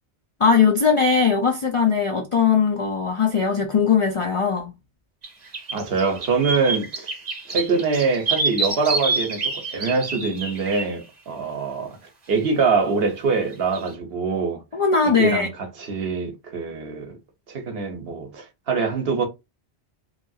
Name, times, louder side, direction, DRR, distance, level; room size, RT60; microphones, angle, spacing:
voice 1, 0.4-4.7 14.7-15.5, left 6 dB, 55° left, 0.3 m, -19 dB
sound 1, 5.2-5.3 5.5-10.9 13.7-13.9, right 3 dB, 40° right, 0.9 m, -27 dB
voice 2, 5.7-7.1 7.5-12.0 12.3-14.6 15.0-15.5 15.8-17.1 17.5-19.3, right 4 dB, 65° right, 1.0 m, -24 dB
3.2 x 2.3 x 2.6 m
omnidirectional pair, 1.1 m